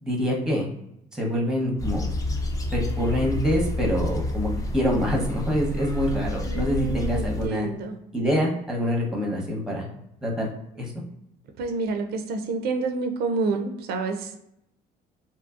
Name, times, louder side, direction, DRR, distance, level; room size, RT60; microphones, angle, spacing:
voice 1, 0.0-0.7 1.1-2.1 2.7-7.7 8.1-9.8 10.2-10.5 10.8-10.9, equal, 5° right, -1 dB, 0.8 m, -25 dB
sound 1, 1.8-7.5, left 1 dB, 20° left, 0.4 m, -29 dB
voice 2, 6.4-8.0 11.6-14.4, right 4 dB, 70° right, 5 dB, 0.4 m, -28 dB
2.7 x 2.5 x 2.4 m, 0.79 s
cardioid pair, 110°, 17 cm